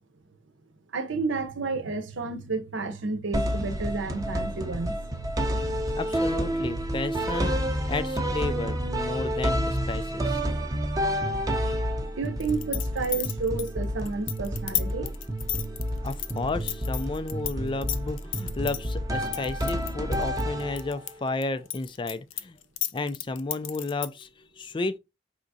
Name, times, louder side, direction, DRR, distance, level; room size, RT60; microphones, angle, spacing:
voice 1, 0.9-5.0 12.1-15.1, right 4 dB, 75° right, 0.8 m, -31 dB
sound 1, 3.3-21.1, equal, 20° right, 0.7 m, -29 dB
voice 2, 6.0-7.6 7.9-10.4 16.0-22.6 22.9-25.0, left 3 dB, 25° left, 0.3 m, -32 dB
sound 2, 12.4-17.5 17.8-18.8 19.3-21.1 21.4-24.2, left 13 dB, 85° left, 0.5 m, -32 dB
5.0 x 3.5 x 2.6 m
head